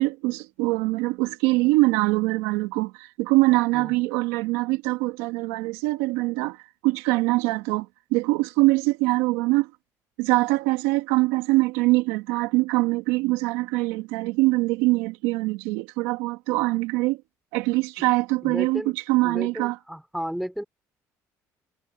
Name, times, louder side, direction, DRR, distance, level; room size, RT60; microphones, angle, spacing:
voice 1, 0.0-9.7 10.2-17.2 17.5-19.8, right 22 dB, 90° right, 1.8 m, -23 dB
voice 2, 18.4-18.9 19.2-20.6, equal, ahead, 4.3 m, -33 dB
supercardioid pair, 85°, 7 cm